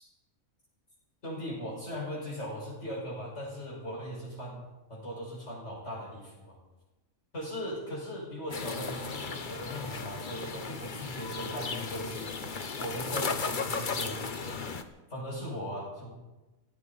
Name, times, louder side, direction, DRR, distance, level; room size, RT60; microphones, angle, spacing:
voice 1, 1.2-6.6 7.3-14.6 15.1-16.1, equal, 55° left, -5 dB, 5.8 m, -39 dB
sound 1, 8.5-14.8, left 4 dB, 40° left, 1.1 m, -35 dB
24.0 x 14.5 x 4.1 m, 1.1 s
omnidirectional pair, 1.4 m